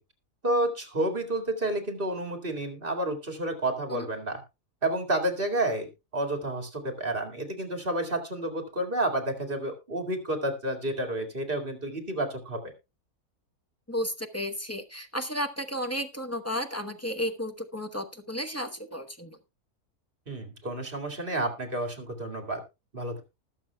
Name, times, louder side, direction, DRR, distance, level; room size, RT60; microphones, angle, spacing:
voice 1, 0.4-4.4 4.8-12.6 20.3-22.6 22.9-23.2, right 1 dB, 35° right, 5 dB, 2.3 m, -30 dB
voice 2, 13.9-19.4, equal, 15° left, 6 dB, 0.7 m, -33 dB
19.5 x 7.0 x 2.3 m, 0.25 s
omnidirectional pair, 1.6 m